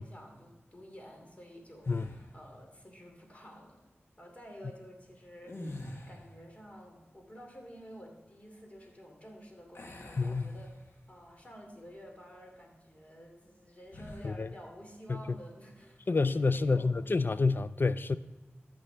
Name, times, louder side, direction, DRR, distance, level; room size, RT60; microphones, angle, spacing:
voice 1, 0.0-3.9 4.2-16.0 16.3-17.0, equal, 35° left, 2.7 m, -51 dB
sound 1, 1.8-2.5 5.4-6.5 9.7-11.2 11.7-11.9 13.9-14.4, left 1 dB, 70° left, 1.4 m, -46 dB
voice 2, 10.2-10.6 14.2-14.5 15.1-15.2 16.1-18.2, left 3 dB, 50° left, 0.4 m, -28 dB
14.0 x 6.3 x 3.4 m
wide cardioid pair, 50°, 4 cm